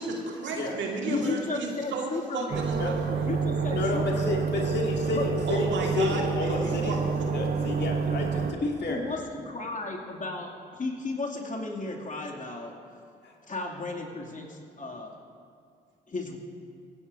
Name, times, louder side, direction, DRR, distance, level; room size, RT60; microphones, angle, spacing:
voice 1, 0.0-3.3 5.5-7.3, right 3 dB, 65° right, 0 dB, 1.9 m, -33 dB
voice 2, 1.1-2.7 3.3-4.5 5.1-5.3 8.3-12.7 13.5-15.1 16.1-16.4, left 3 dB, 40° left, -1 dB, 2.6 m, -34 dB
sound 1, 2.5-8.5, right 5 dB, 50° right, 1.2 m, -28 dB
voice 3, 3.7-5.7 5.9-7.0 7.3-9.0 13.2-13.3, left 4 dB, 55° left, -1 dB, 2.4 m, -31 dB
25.0 x 10.0 x 2.7 m, 2.4 s
hypercardioid pair, 40°, 21 cm